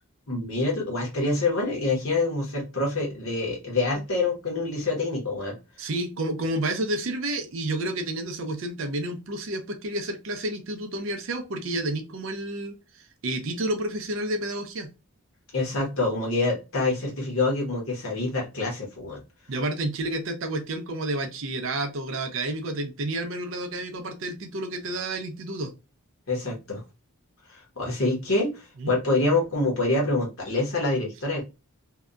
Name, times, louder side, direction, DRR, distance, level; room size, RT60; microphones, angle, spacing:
voice 1, 0.3-5.6 15.5-19.2 26.3-26.8 27.5-31.4, left 2 dB, 65° left, -1 dB, 1.0 m, -26 dB
voice 2, 5.8-14.9 19.5-25.7 28.8-28.9, right 1 dB, 60° right, 7 dB, 0.5 m, -30 dB
2.7 x 2.2 x 2.3 m, 0.27 s
head